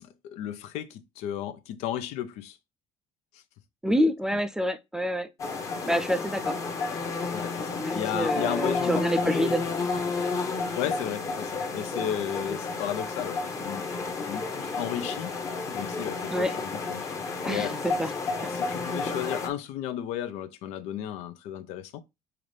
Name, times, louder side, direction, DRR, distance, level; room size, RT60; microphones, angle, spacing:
voice 1, 0.0-2.6 3.3-3.4 4.3-4.4 7.3-9.7 10.7-15.3 15.7-17.1 17.5-17.7 18.5-22.0, left 10 dB, 85° left, 0.6 m, -34 dB
voice 2, 3.8-5.3 5.9-6.6 7.8-9.6 10.0-10.1 16.3-16.5 17.4-18.1 18.4-18.5, equal, 5° right, 0.3 m, -27 dB
sound 1, 5.4-19.5, left 4 dB, 30° left, 0.9 m, -31 dB
5.8 x 2.5 x 3.3 m
cardioid pair, 150°, 11 cm